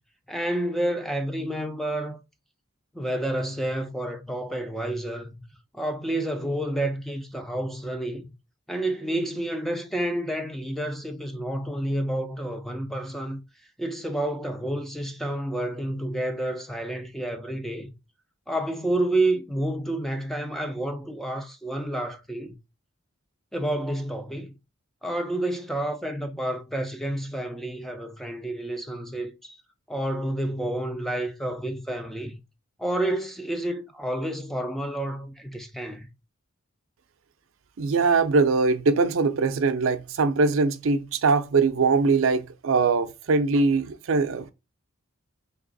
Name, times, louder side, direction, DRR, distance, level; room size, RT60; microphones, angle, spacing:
voice 1, 0.3-2.2 2.9-5.4 5.7-8.3 8.7-13.4 13.8-17.9 18.5-22.6 23.5-24.5 25.0-29.6 29.9-32.4 32.8-36.1, right 1 dB, ahead, 0.4 m, -29 dB
voice 2, 37.8-44.5, right 4 dB, 75° right, 0.5 m, -22 dB
3.3 x 2.9 x 3.8 m
head